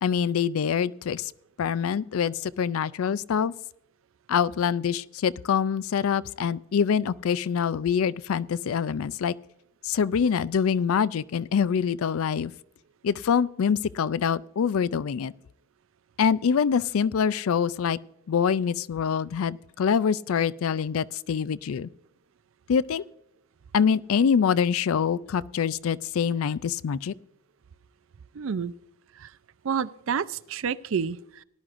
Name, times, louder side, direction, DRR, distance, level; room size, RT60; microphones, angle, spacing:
voice 1, 0.0-1.3 1.6-3.5 4.3-9.3 9.8-12.5 13.0-15.3 16.2-18.0 18.3-21.9 22.7-23.0 23.7-27.1, left 7 dB, 75° left, 19 dB, 0.4 m, -25 dB
voice 2, 28.3-28.7 29.2-29.3 29.6-31.4, right 6 dB, 65° right, 16 dB, 0.4 m, -29 dB
18.5 x 11.0 x 2.5 m, 0.77 s
head